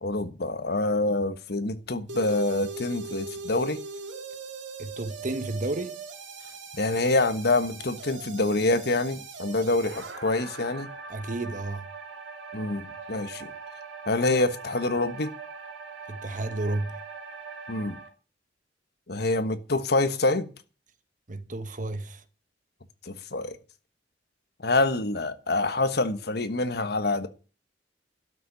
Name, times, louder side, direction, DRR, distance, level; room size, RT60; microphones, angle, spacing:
voice 1, 0.0-3.8 6.7-10.9 12.5-13.5 14.1-15.3 17.7-18.0 19.1-20.5 23.1-23.6 24.6-27.3, left 2 dB, 60° left, 1.3 m, -26 dB
sound 1, 2.1-18.1, right 4 dB, 85° right, 2.7 m, -41 dB
voice 2, 4.8-5.9 11.1-11.8 16.1-17.0 21.3-22.2, right 2 dB, 45° right, 1.2 m, -32 dB
12.0 x 6.8 x 9.8 m
head